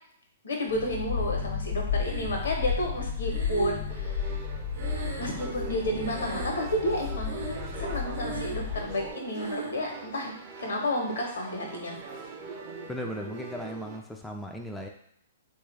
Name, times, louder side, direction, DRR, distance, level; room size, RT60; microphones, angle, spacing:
voice 1, 0.4-4.3 5.2-7.3 7.8-10.3 10.6-12.0, left 1 dB, 80° left, 0 dB, 0.9 m, -31 dB
sound 1, 0.7-9.1, left 6 dB, 50° left, 0.6 m, -33 dB
Breathing, 2.0-2.7 3.3-5.7 6.0-6.8 7.2-7.8 8.1-8.7 9.3-9.8, right 3 dB, 85° right, 0.7 m, -38 dB
sound 2, 3.9-14.0, right 4 dB, 40° right, 0.6 m, -42 dB
voice 2, 12.9-14.9, equal, 5° left, 1 dB, 0.3 m, -37 dB
3.2 x 2.4 x 3.1 m, 0.72 s
hypercardioid pair, 130°, 0 cm